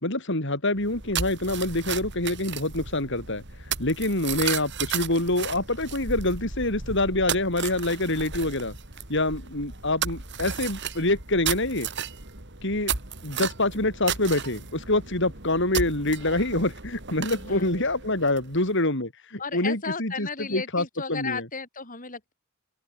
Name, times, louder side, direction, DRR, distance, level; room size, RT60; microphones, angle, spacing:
voice 1, 0.0-3.4 3.8-8.8 9.1-11.9 12.6-12.9 13.2-21.4, left 2 dB, 60° left, 6.0 m, -26 dB
sound 1, 0.8-18.7, right 6 dB, 55° right, 4.3 m, -34 dB
voice 2, 17.3-17.7 19.4-22.3, left 5 dB, 40° left, 7.5 m, -34 dB
open air
head